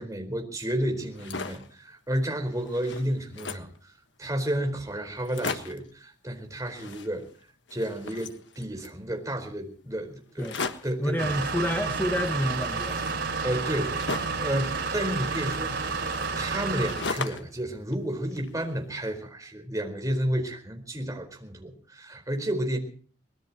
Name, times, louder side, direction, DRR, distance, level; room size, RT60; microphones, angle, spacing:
voice 1, 0.0-3.9 4.2-7.2 7.7-10.5 10.8-11.4 13.4-15.8 16.3-22.8, right 1 dB, 20° right, 4 dB, 4.5 m, -31 dB
sound 1, 1.0-1.7 2.2-2.3 2.5-3.8 4.4-4.5 4.7-4.8 5.1-5.9 6.6-7.4 7.7-9.0 10.4-11.0 12.0-14.5 15.2-17.6 17.9-18.8, left 4 dB, 70° left, 1.5 m, -38 dB
voice 2, 11.0-13.0, equal, 10° left, 2 dB, 1.7 m, -28 dB
sound 2, 11.2-17.2, right 4 dB, 65° right, 5.0 m, -30 dB
24.0 x 20.0 x 3.0 m, 0.42 s
head